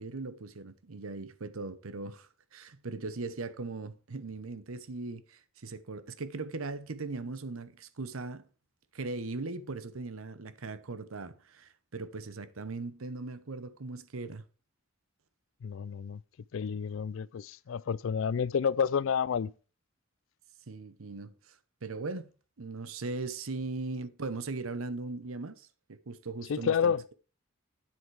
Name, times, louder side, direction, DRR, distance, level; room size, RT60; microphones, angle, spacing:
voice 1, 0.0-8.4 8.9-14.4 20.7-22.3 22.6-27.1, right 3 dB, 90° right, 0.9 m, -39 dB
voice 2, 15.6-16.2 16.5-19.5 26.5-27.0, left 7 dB, 70° left, 0.4 m, -30 dB
9.3 x 8.0 x 4.7 m
head